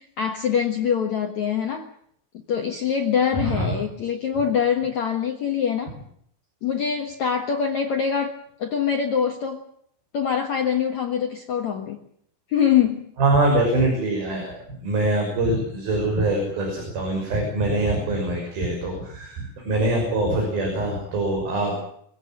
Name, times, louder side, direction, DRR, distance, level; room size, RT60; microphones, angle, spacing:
voice 1, 0.0-1.9 2.5-6.0 6.6-9.6 10.1-12.0 12.5-13.1, left 7 dB, 70° left, 4 dB, 1.7 m, -24 dB
voice 2, 3.4-3.7 13.2-14.5 14.8-21.8, right 2 dB, 50° right, 1 dB, 7.5 m, -23 dB
24.5 x 16.5 x 9.0 m, 0.69 s
omnidirectional pair, 5.6 m